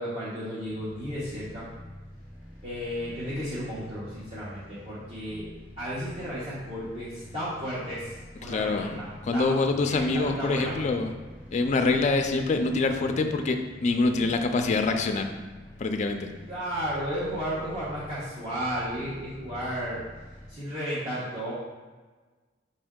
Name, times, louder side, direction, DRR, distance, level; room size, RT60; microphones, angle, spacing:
voice 1, 0.0-1.7 2.6-5.4 5.8-9.5 9.8-10.7 16.5-20.0 20.5-21.5, equal, 30° right, -12 dB, 1.0 m, -33 dB
sound 1, 0.6-20.5, left 1 dB, 5° right, 1.4 m, -47 dB
voice 2, 8.4-9.0 9.2-11.1 11.5-15.3 15.8-16.3, left 3 dB, 40° left, 5 dB, 0.3 m, -25 dB
5.3 x 2.6 x 3.6 m, 1.3 s
head